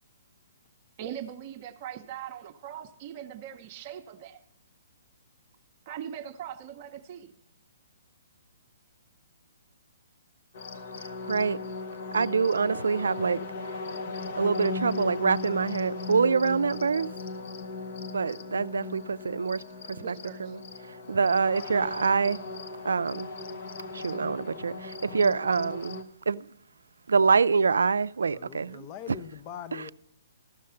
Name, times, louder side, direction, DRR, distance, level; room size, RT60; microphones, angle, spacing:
voice 1, 1.0-4.4 5.9-7.3 20.0-20.6, right 10 dB, 40° right, 0.6 m, -41 dB
sound 1, 10.5-26.0, left 3 dB, 55° left, 0.9 m, -37 dB
voice 2, 11.0-11.6 12.1-13.4 14.4-17.1 18.1-20.1 20.4-22.4 22.8-23.3 23.9-26.5 27.1-28.9 29.7-29.8, right 5 dB, 80° right, 0.3 m, -26 dB
voice 3, 28.3-29.9, left 8 dB, 30° left, 0.6 m, -42 dB
13.5 x 6.5 x 5.6 m
hypercardioid pair, 140°, 0 cm